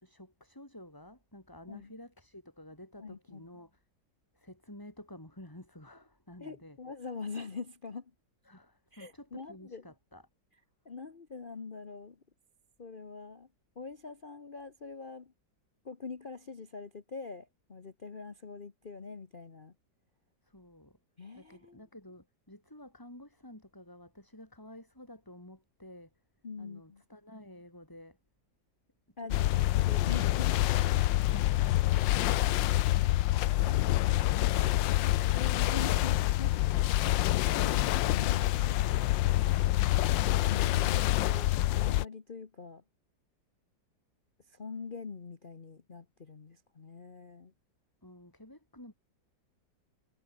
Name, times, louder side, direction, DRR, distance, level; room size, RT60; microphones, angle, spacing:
voice 1, 0.0-3.8 4.3-6.8 8.5-10.2 20.4-21.0 21.3-26.1 26.6-28.2 29.2-29.5 48.0-48.9, left 1 dB, 10° left, 4.4 m, -51 dB
voice 2, 3.0-3.5 6.4-8.1 8.9-9.8 10.8-12.2 12.8-13.5 13.7-15.3 15.8-19.7 21.2-21.8 26.4-27.0 29.2-30.6 35.3-39.1 40.4-42.8 44.5-47.5, left 4 dB, 30° left, 1.1 m, -44 dB
sound 1, 29.3-42.1, left 15 dB, 75° left, 1.3 m, -27 dB
omnidirectional pair, 2.1 m